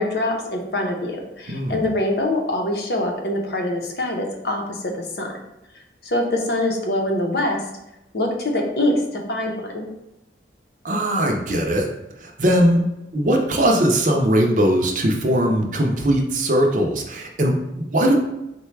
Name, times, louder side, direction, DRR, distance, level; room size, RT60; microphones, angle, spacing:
voice 1, 0.0-5.4 6.0-7.6 8.1-9.9, left 1 dB, 60° left, 1 dB, 0.7 m, -24 dB
voice 2, 10.8-11.9 12.2-12.9 13.1-18.2, equal, 45° right, 2 dB, 0.6 m, -20 dB
4.1 x 2.2 x 4.5 m, 0.91 s
head